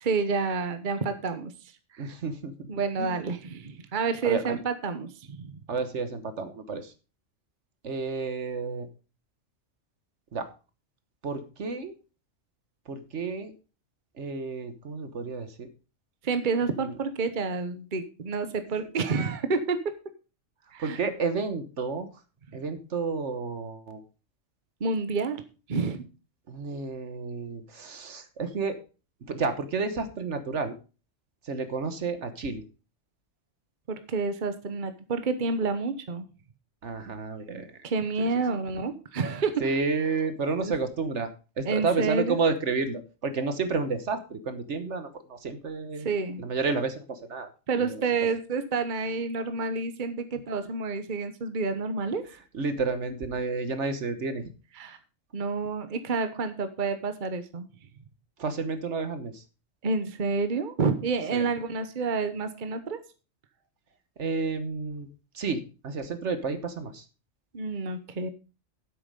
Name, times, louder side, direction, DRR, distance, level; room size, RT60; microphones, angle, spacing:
voice 1, 0.0-1.5 1.9-2.1 2.7-5.5 16.2-19.8 20.7-21.0 24.8-25.4 25.7-26.0 33.9-36.2 37.8-39.7 40.6-40.7 41.6-42.4 46.0-46.4 47.7-52.2 54.8-55.0 55.3-57.7 59.8-63.0 67.5-68.3, right 4 dB, 40° right, 10 dB, 1.1 m, -29 dB
voice 2, 2.0-2.7 3.0-3.3 4.2-4.6 5.7-6.9 7.8-8.9 10.3-10.5 11.2-11.9 12.9-13.5 14.2-15.7 16.8-16.9 20.8-22.1 22.5-24.0 26.5-28.8 29.2-30.7 31.4-32.6 36.8-37.7 39.6-46.1 46.4-47.5 47.7-48.0 52.5-54.4 58.4-59.4 61.3-61.4 64.2-65.1 65.3-67.0, right 4 dB, 65° right, 10 dB, 1.4 m, -31 dB
9.7 x 8.2 x 5.2 m, 0.34 s
omnidirectional pair, 1.4 m